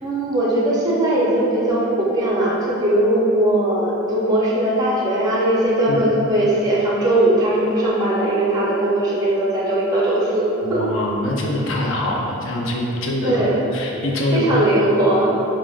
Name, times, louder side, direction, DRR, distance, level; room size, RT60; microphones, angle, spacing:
voice 1, 0.0-10.9 13.2-13.6 14.3-15.3, right 1 dB, 20° right, -6 dB, 0.5 m, -19 dB
voice 2, 10.6-14.5, left 1 dB, 60° left, -1 dB, 0.5 m, -24 dB
6.0 x 2.0 x 2.3 m, 2.9 s
head